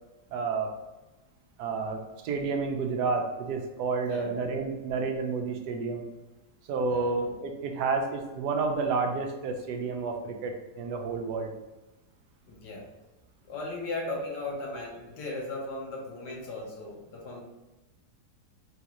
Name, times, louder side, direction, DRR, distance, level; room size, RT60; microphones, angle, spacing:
voice 1, 0.3-0.7 1.6-6.0 6.7-11.5, right 4 dB, 80° right, 3 dB, 1.1 m, -30 dB
voice 2, 4.0-4.3 6.9-7.4 12.5-12.9 13.4-17.4, left 2 dB, 90° left, -2 dB, 1.5 m, -37 dB
3.8 x 2.4 x 2.8 m, 1.1 s
omnidirectional pair, 1.8 m